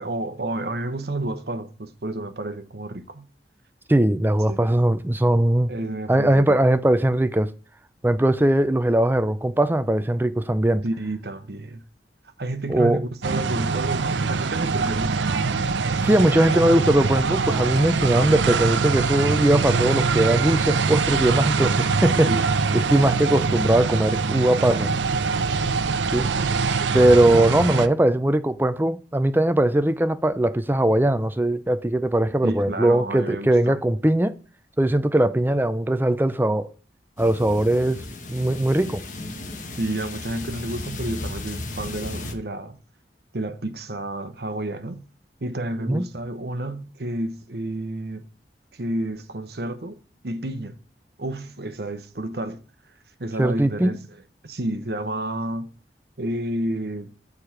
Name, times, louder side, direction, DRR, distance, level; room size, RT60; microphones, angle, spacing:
voice 1, 0.0-3.3 4.5-4.6 5.7-6.6 10.8-11.8 12.4-15.4 22.3-22.5 32.4-33.8 39.8-42.8 43.3-45.0 45.4-48.3 48.7-50.0 50.2-50.8 51.2-52.6 53.2-54.0 54.4-55.7 56.2-57.1, right 1 dB, 60° right, 0.9 m, -30 dB
voice 2, 3.9-5.7 6.1-7.5 8.0-10.8 12.7-13.0 16.0-22.3 22.7-24.9 26.1-26.3 26.9-34.3 34.8-36.7 37.2-38.0 38.3-39.0 45.9-46.0 53.4-54.0, right 1 dB, 10° right, 0.4 m, -20 dB
sound 1, 13.2-27.9, right 4 dB, 85° right, 0.6 m, -23 dB
sound 2, 37.2-42.3, left 2 dB, 45° left, 1.2 m, -35 dB
6.9 x 4.8 x 5.7 m
head